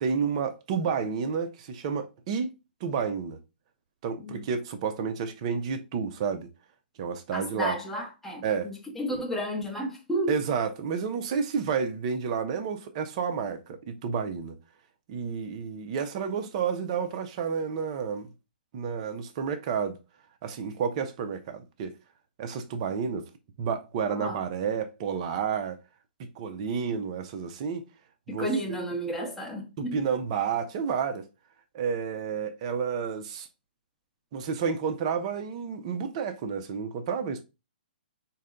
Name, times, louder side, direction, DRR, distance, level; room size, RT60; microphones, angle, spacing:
voice 1, 0.0-2.5 2.8-3.4 4.0-6.5 7.0-7.8 8.4-8.7 9.2-9.3 10.3-14.6 15.1-18.3 18.7-20.0 20.4-21.9 22.4-23.3 23.6-25.8 26.2-27.9 28.3-28.5 29.8-31.3 31.7-33.5 34.3-37.4, right 6 dB, 40° right, 0.5 m, -30 dB
voice 2, 7.3-10.4 24.1-24.4 28.3-30.0, right 1 dB, 5° left, 0.8 m, -32 dB
4.0 x 2.1 x 3.7 m
hypercardioid pair, 150°, 5 cm